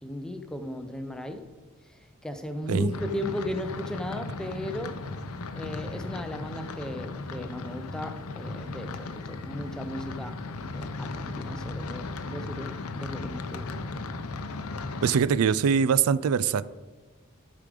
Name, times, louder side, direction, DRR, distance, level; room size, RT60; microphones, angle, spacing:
voice 1, 0.0-1.5 1.8-5.0 5.6-10.4 10.7-13.8, left 1 dB, 5° left, 8 dB, 0.5 m, -36 dB
sound 1, 2.9-15.2, left 3 dB, 85° left, 0.7 m, -36 dB
voice 2, 15.0-16.7, right 7 dB, 80° right, 16 dB, 0.4 m, -23 dB
12.0 x 4.9 x 5.0 m, 1.3 s
head